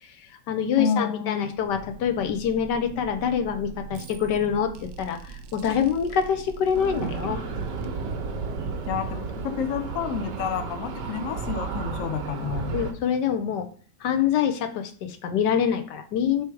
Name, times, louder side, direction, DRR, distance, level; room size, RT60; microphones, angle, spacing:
voice 1, 0.0-7.4 12.7-13.7 14.0-16.4, left 8 dB, 85° left, 6 dB, 1.4 m, -25 dB
voice 2, 0.8-1.5 8.9-12.8, left 6 dB, 60° left, 8 dB, 1.0 m, -29 dB
sound 1, 1.5-9.9, right 6 dB, 70° right, 0.7 m, -43 dB
sound 2, 6.7-12.9, right 4 dB, 90° right, 1.5 m, -32 dB
5.9 x 3.5 x 4.7 m, 0.43 s
omnidirectional pair, 1.8 m